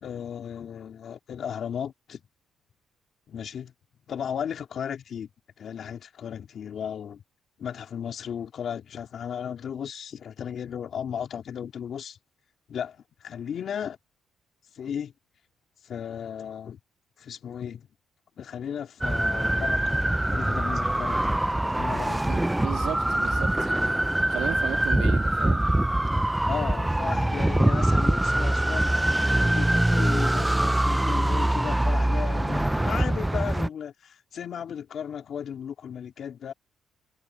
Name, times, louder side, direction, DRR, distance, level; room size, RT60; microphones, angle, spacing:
voice 1, 0.0-2.2 3.3-3.7 4.1-5.3 5.6-7.2 7.6-12.2 12.7-14.0 14.8-15.1 15.8-16.8 17.2-17.9 18.4-22.2 26.5-28.9 29.4-36.5, left 8 dB, 60° left, 3.5 m, -35 dB
sound 1, 19.0-33.7, right 1 dB, 10° right, 0.4 m, -24 dB
voice 2, 22.3-23.9 24.3-25.6, right 12 dB, 85° right, 2.5 m, -35 dB
cardioid pair, 100°, 0 cm